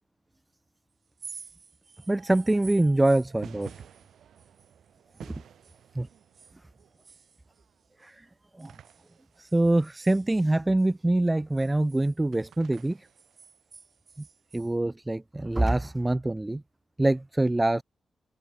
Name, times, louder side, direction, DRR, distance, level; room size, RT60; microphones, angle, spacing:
sound 1, 1.0-5.3 5.6-8.1 8.6-10.9 11.2-14.7, right 5 dB, 55° right, 5.0 m, -52 dB
voice 1, 2.1-3.7 6.0-6.1 8.0-8.2 8.6-8.7 9.4-13.0 14.5-16.6 17.0-17.8, right 2 dB, 15° right, 0.4 m, -24 dB
sound 2, 2.1-11.3 12.3-14.2 15.6-15.7, right 9 dB, 85° right, 2.2 m, -53 dB
cardioid pair, 70°, 0 cm